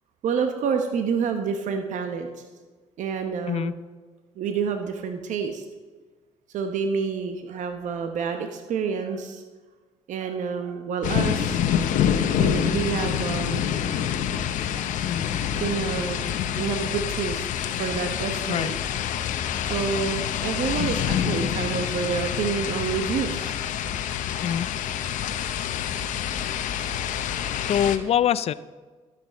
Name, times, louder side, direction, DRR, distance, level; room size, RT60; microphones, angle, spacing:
voice 1, 0.2-2.3 3.0-3.8 4.4-5.7 6.5-9.4 10.1-11.6 12.2-14.0 14.7-14.9 15.6-16.3 16.6-17.5 17.8-19.0 19.6-23.6, right 6 dB, 75° right, 6 dB, 1.0 m, -28 dB
sound 1, 11.0-28.0, left 9 dB, 80° left, 0.8 m, -27 dB
voice 2, 15.1-15.4 18.5-18.7 24.4-24.7 27.6-28.5, left 9 dB, 55° left, 16 dB, 0.4 m, -24 dB
12.5 x 6.1 x 7.2 m, 1.3 s
cardioid pair, 75°, 13 cm